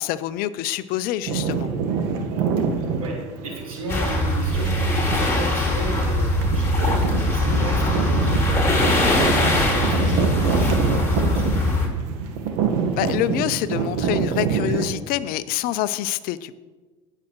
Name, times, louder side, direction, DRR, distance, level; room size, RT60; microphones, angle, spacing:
voice 1, 0.0-1.7 10.0-10.3 13.0-16.6, left 13 dB, 60° left, 15 dB, 0.6 m, -26 dB
sound 1, 1.2-14.8, right 6 dB, 65° right, 1.5 m, -26 dB
voice 2, 3.0-4.8 5.1-8.5 8.8-9.3 9.7-11.8, right 3 dB, 90° right, -3 dB, 3.4 m, -34 dB
sound 2, 3.9-11.9, left 1 dB, 15° left, 4.1 m, -21 dB
19.0 x 7.6 x 3.1 m, 1.3 s
hypercardioid pair, 75°, 17 cm